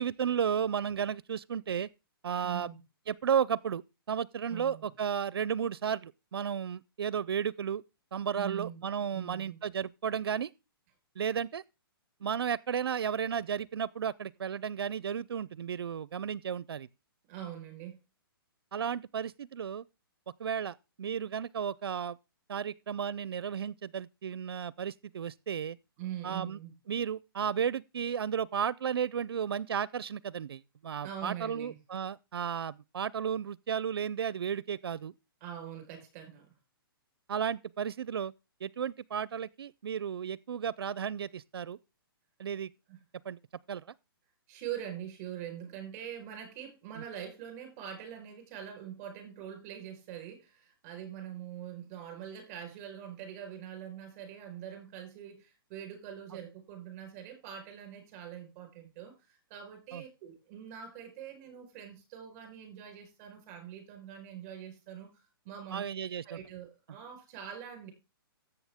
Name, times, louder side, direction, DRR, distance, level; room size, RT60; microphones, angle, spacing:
voice 1, 0.0-1.9 2.2-2.7 3.1-7.8 8.1-10.5 11.2-11.6 12.2-16.9 18.7-19.8 20.4-22.2 22.5-25.8 26.2-26.6 26.9-35.1 37.3-38.3 38.6-41.8 42.4-42.7 43.3-43.4 43.7-43.8 59.9-60.0 65.7-66.4, right 8 dB, 90° right, 0.5 m, -33 dB
voice 2, 2.4-2.8 4.5-4.9 8.3-8.8 9.1-9.6 17.3-18.0 26.0-26.7 31.0-31.8 35.4-36.5 42.9-43.0 44.5-65.8 66.2-67.9, right 10 dB, 30° right, 4.5 m, -43 dB
13.5 x 8.0 x 3.5 m
hypercardioid pair, 155°, 13 cm